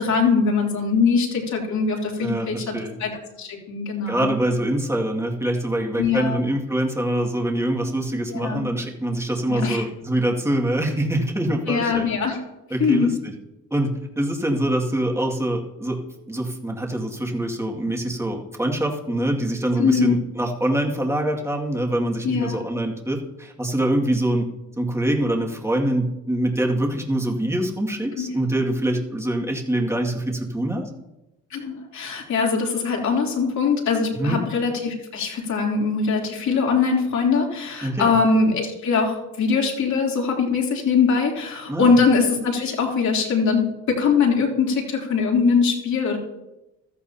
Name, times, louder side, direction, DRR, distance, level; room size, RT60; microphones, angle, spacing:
voice 1, 0.0-2.7 3.0-3.1 3.4-4.3 6.0-6.4 8.3-8.6 9.5-9.8 11.7-12.4 12.8-13.1 19.8-20.1 22.2-22.6 28.2-28.3 31.5-46.2, left 5 dB, 65° left, -1 dB, 3.2 m, -22 dB
voice 2, 2.2-3.0 4.1-12.1 12.7-13.3 13.7-16.0 16.3-24.5 24.8-30.9 34.2-34.4 37.8-38.1 41.7-41.9, right 1 dB, 10° right, 0 dB, 2.2 m, -24 dB
15.0 x 13.5 x 2.8 m, 0.97 s
cardioid pair, 90°, 30 cm